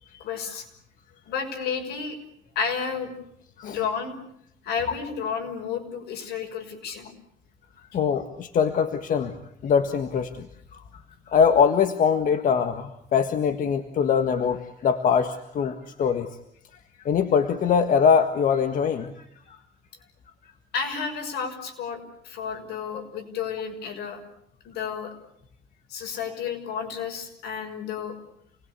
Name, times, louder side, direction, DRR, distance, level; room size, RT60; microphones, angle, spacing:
voice 1, 0.1-0.7 1.3-2.2 2.5-3.1 3.6-4.2 4.6-7.1 20.7-24.2 24.6-25.1 25.9-28.2, left 6 dB, 75° left, 6 dB, 6.2 m, -31 dB
voice 2, 7.9-9.3 9.6-10.5 11.3-16.3 17.1-19.3, left 6 dB, 50° left, 8 dB, 1.7 m, -22 dB
28.5 x 20.5 x 8.4 m, 0.72 s
cardioid pair, 110°, 17 cm